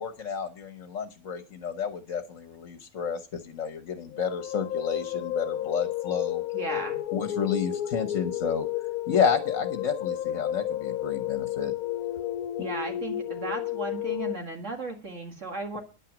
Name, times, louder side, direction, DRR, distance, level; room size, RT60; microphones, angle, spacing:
voice 1, 0.0-6.4 7.1-8.7 9.1-11.7, left 7 dB, 60° left, 8 dB, 1.4 m, -30 dB
sound 1, 4.1-14.4, left 12 dB, 85° left, 1.2 m, -32 dB
voice 2, 6.5-7.0 12.6-15.8, right 2 dB, 55° right, 2 dB, 2.3 m, -35 dB
10.5 x 9.0 x 6.0 m, 0.34 s
omnidirectional pair, 1.5 m